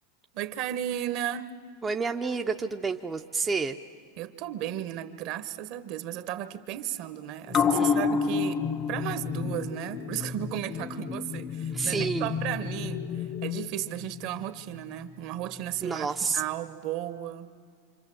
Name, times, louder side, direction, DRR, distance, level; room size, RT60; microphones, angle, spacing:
voice 1, 0.3-1.5 4.2-8.6 8.9-16.1 16.3-17.5, right 12 dB, 50° right, 12 dB, 1.1 m, -34 dB
voice 2, 1.8-3.8 7.7-8.1 11.7-12.3 15.8-16.4, right 4 dB, 15° right, 4 dB, 0.6 m, -29 dB
sound 1, 7.5-14.4 14.8-14.9, left 6 dB, 25° left, 0.8 m, -30 dB
27.0 x 25.5 x 7.8 m, 2.3 s
supercardioid pair, 140°, 0 cm